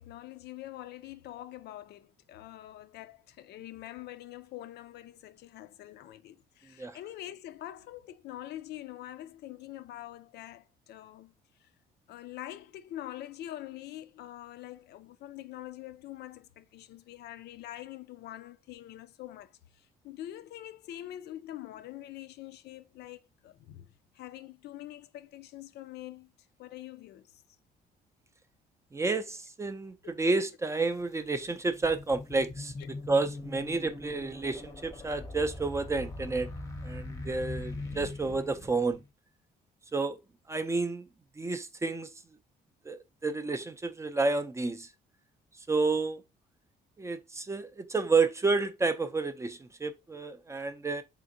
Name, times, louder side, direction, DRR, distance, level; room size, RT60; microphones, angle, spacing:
voice 1, 0.0-11.3 11.6-11.7 12.1-26.3 26.6-27.3 32.8-32.9, left 13 dB, 75° left, 0.4 m, -45 dB
voice 2, 28.9-36.5 36.8-39.0 39.9-40.2 40.5-41.1 41.4-42.1 42.9-44.9 45.7-46.2 47.0-51.0, right 3 dB, 15° right, 0.4 m, -30 dB
sound 1, 30.8-30.9 31.4-39.1, left 2 dB, 15° left, 0.7 m, -41 dB
3.7 x 3.5 x 2.6 m
cardioid pair, 115°, 17 cm